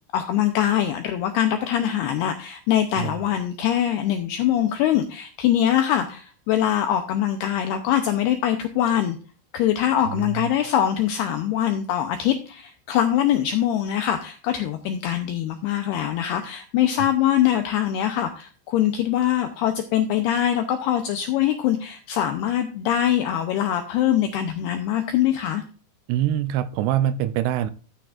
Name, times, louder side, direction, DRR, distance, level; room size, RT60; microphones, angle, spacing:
voice 1, 0.1-9.2 9.5-25.6, left 11 dB, 85° left, 7 dB, 2.3 m, -23 dB
voice 2, 10.1-10.5 17.0-17.1 26.1-27.7, right 11 dB, 85° right, 11 dB, 2.3 m, -25 dB
13.5 x 8.6 x 2.5 m, 0.37 s
omnidirectional pair, 5.5 m